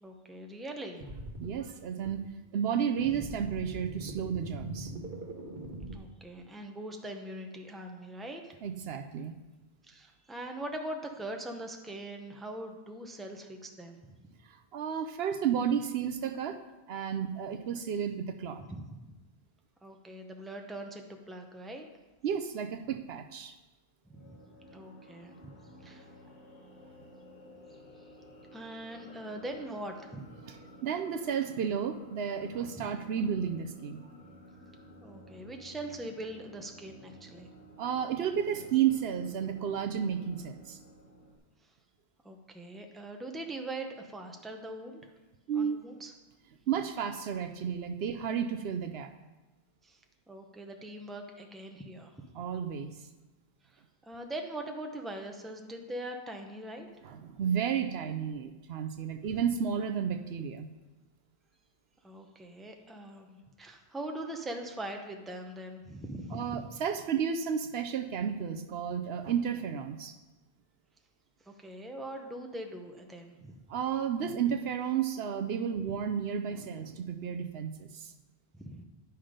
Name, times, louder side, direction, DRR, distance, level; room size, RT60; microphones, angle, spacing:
voice 1, 0.0-1.0 5.9-8.6 9.8-14.0 18.7-18.9 19.8-21.8 24.2-24.3 24.7-25.5 25.8-26.1 28.5-30.2 35.0-37.5 42.2-45.0 45.5-46.1 49.8-50.0 50.3-52.2 53.6-56.9 62.0-66.6 71.5-73.5 78.5-78.8, right 1 dB, ahead, 3 dB, 0.7 m, -42 dB
sound 1, 1.0-1.5 2.0-2.1 3.0-6.0, right 1 dB, 55° right, 1.3 m, -41 dB
voice 2, 1.4-2.2 2.5-4.9 8.6-9.3 14.7-16.6 16.9-18.6 22.2-23.5 30.8-34.0 37.8-40.8 45.5-45.8 46.7-49.1 52.3-52.9 57.0-60.7 66.3-70.2 73.7-78.1, right 8 dB, 70° right, 8 dB, 0.8 m, -32 dB
sound 2, 24.1-41.4, equal, 85° left, 1.7 m, -53 dB
10.5 x 5.7 x 5.0 m, 1.1 s
omnidirectional pair, 1.1 m